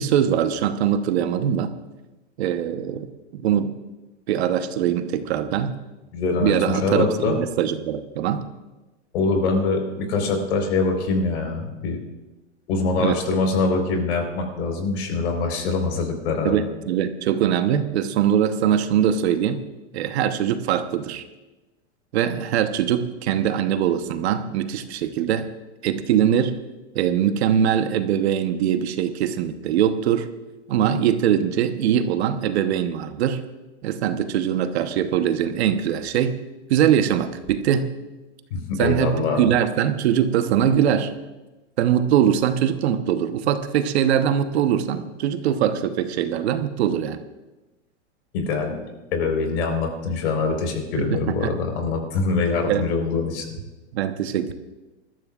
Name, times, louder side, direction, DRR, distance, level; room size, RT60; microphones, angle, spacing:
voice 1, 0.0-1.7 2.4-3.7 4.3-5.8 6.4-8.4 13.0-13.2 16.4-19.6 19.9-21.2 22.1-25.5 25.8-26.6 26.9-30.3 30.7-33.4 33.8-36.4 36.7-37.9 38.8-41.1 41.8-47.2 51.0-51.5 52.7-52.9 53.9-54.5, right 9 dB, 60° right, 9 dB, 1.1 m, -22 dB
voice 2, 6.1-7.4 9.1-12.0 12.7-16.6 38.5-39.5 48.3-48.7 49.1-53.4, left 4 dB, 60° left, 3 dB, 4.3 m, -24 dB
21.5 x 14.0 x 2.5 m, 1.1 s
hypercardioid pair, 140°, 36 cm